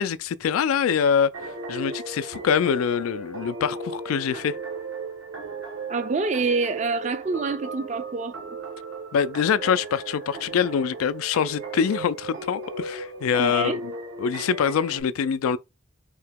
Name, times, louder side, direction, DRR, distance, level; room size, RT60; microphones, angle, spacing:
voice 1, 0.0-4.6 9.1-13.9 14.2-15.6, left 7 dB, 90° left, 0.3 m, -24 dB
sound 1, 1.3-15.0, right 3 dB, 90° right, 1.2 m, -36 dB
voice 2, 5.9-8.4 13.4-13.8, right 4 dB, 35° right, 0.4 m, -26 dB
3.7 x 2.9 x 3.4 m
head